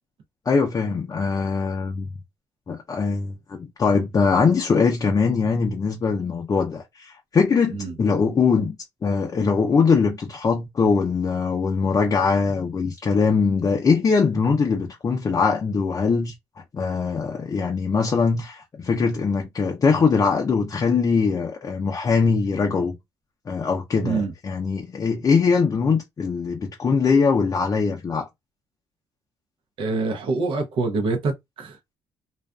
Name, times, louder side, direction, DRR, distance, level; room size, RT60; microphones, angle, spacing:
voice 1, 0.5-2.1 2.7-8.7 9.0-16.3 16.7-22.9 23.5-28.3, left 5 dB, 35° left, 0.6 m, -22 dB
voice 2, 29.8-31.8, right 3 dB, 60° right, 0.7 m, -25 dB
2.5 x 2.4 x 2.2 m
supercardioid pair, 75°, 10 cm